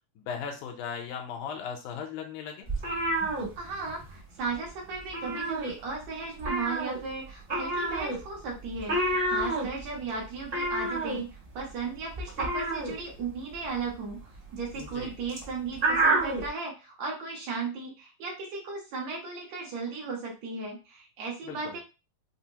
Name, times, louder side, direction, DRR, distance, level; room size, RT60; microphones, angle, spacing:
voice 1, 0.2-2.7 14.7-15.2 21.4-21.8, left 7 dB, 80° left, 3 dB, 2.2 m, -37 dB
sound 1, 2.7-4.2 4.4-4.7 5.0-6.1 6.4-16.5, right 2 dB, 35° right, 0.9 m, -30 dB
voice 2, 3.6-21.8, right 4 dB, 70° right, -1 dB, 2.0 m, -36 dB
5.2 x 2.1 x 2.8 m, 0.31 s
omnidirectional pair, 3.5 m